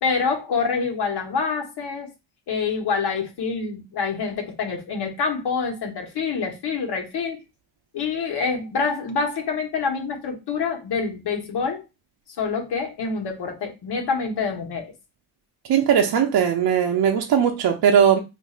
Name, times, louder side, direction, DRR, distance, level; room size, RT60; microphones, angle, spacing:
voice 1, 0.0-2.1 2.5-7.4 7.9-11.8 12.4-14.9, left 5 dB, 65° left, 1.1 m, -26 dB
voice 2, 15.7-18.2, right 8 dB, 65° right, 0.6 m, -19 dB
4.1 x 2.6 x 2.4 m
cardioid pair, 130°, 42 cm